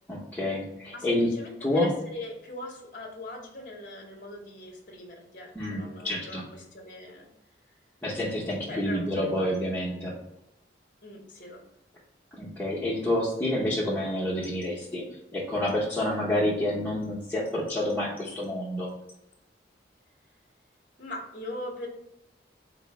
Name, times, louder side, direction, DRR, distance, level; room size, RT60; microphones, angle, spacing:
voice 1, 0.1-1.3 1.6-1.9 5.5-6.4 8.0-10.2 12.3-15.1 15.3-18.9, left 1 dB, 10° left, -9 dB, 0.7 m, -28 dB
voice 2, 0.9-7.3 8.7-9.5 11.0-11.6 21.0-21.9, left 1 dB, 45° left, 1 dB, 0.8 m, -41 dB
4.4 x 2.0 x 4.3 m, 0.83 s
head